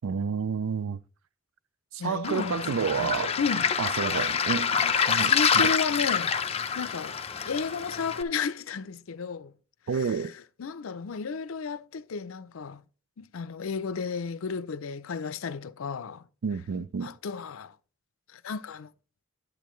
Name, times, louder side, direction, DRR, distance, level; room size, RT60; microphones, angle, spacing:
voice 1, 0.0-1.0 1.9-3.4 3.8-5.7 9.9-10.3 16.4-17.1, right 6 dB, 80° right, 0.4 m, -30 dB
voice 2, 2.0-3.7 4.1-4.4 4.8-7.2 7.4-9.5 10.0-10.3 10.6-12.8 13.2-16.2 16.7-17.7 18.3-18.9, left 5 dB, 80° left, 0.5 m, -33 dB
Waves surf, 2.2-8.2, left 6 dB, 30° left, 0.6 m, -27 dB
10.5 x 8.1 x 3.1 m
head